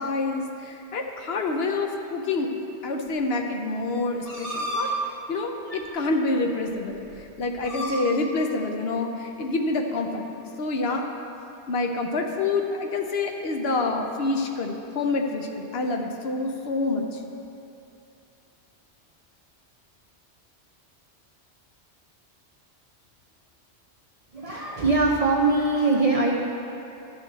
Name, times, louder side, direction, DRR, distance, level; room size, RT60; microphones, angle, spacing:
voice 1, 0.0-2.5 2.8-4.9 5.3-7.0 7.4-10.3 10.6-11.0 11.7-17.1, left 3 dB, 65° left, 3 dB, 0.9 m, -27 dB
sound 1, 4.2-4.9 5.7-5.8 6.7-6.8 7.0-7.2 7.6-8.0, equal, 30° left, 1.6 m, -31 dB
voice 2, 24.3-26.4, right 3 dB, 40° right, -1 dB, 0.6 m, -22 dB
12.0 x 6.7 x 4.0 m, 2.8 s
omnidirectional pair, 1.2 m